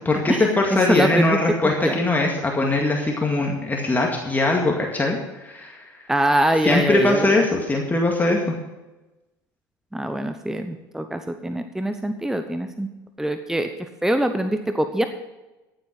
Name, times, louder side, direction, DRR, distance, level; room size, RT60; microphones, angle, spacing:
voice 1, 0.1-5.8 6.6-8.5, left 2 dB, 15° left, 0 dB, 2.1 m, -21 dB
voice 2, 0.9-1.4 1.8-2.0 6.1-7.4 9.9-12.9 13.2-13.7 14.0-15.1, right 1 dB, 5° right, 8 dB, 0.9 m, -23 dB
14.5 x 7.8 x 5.9 m, 1.1 s
hypercardioid pair, 70°, 11 cm